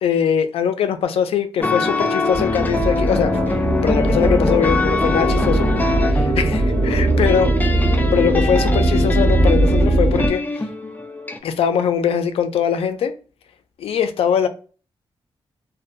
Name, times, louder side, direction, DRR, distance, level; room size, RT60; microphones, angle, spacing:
voice 1, 0.0-5.7 6.1-7.5 8.1-10.4 11.4-13.2 13.8-14.5, left 8 dB, 85° left, 0.4 m, -21 dB
sound 1, 1.6-11.4, left 3 dB, 20° left, 0.4 m, -24 dB
sound 2, 2.3-10.3, right 1 dB, 40° right, 1.2 m, -19 dB
2.6 x 2.2 x 2.4 m
cardioid pair, 90°, 10 cm